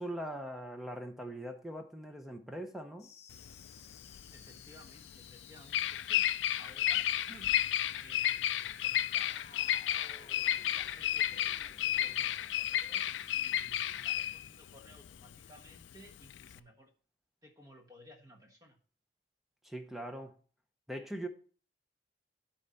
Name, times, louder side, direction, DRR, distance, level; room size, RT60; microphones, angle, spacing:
voice 1, 0.0-3.1 19.6-20.4 20.9-21.3, right 1 dB, ahead, 5 dB, 0.6 m, -41 dB
sound 1, 3.0-14.0, left 5 dB, 35° left, 0.9 m, -57 dB
Bird vocalization bird call bird song, 3.3-16.6, left 11 dB, 85° left, 0.3 m, -32 dB
voice 2, 4.3-7.7 8.0-10.4 10.7-11.6 12.0-13.1 13.3-16.9 17.4-18.8, equal, 20° right, 3 dB, 1.2 m, -57 dB
12.5 x 4.3 x 4.0 m, 0.42 s
head